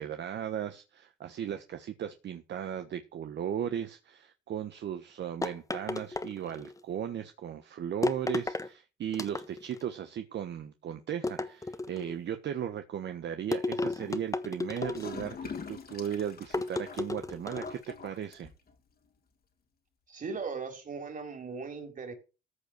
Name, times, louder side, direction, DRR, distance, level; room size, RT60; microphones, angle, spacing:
voice 1, 0.0-18.5, right 9 dB, 65° right, 8 dB, 1.2 m, -36 dB
sound 1, 5.4-6.8 8.0-8.7 9.1-9.8 11.2-12.2 13.5-15.3 16.5-17.8, left 2 dB, 15° left, 1.2 m, -33 dB
Gurgling / Toilet flush, 14.8-18.8, left 5 dB, 50° left, 2.4 m, -43 dB
voice 2, 20.1-22.1, right 5 dB, 40° right, 5 dB, 4.2 m, -38 dB
14.5 x 5.1 x 6.6 m, 0.30 s
cardioid pair, 90°, 20 cm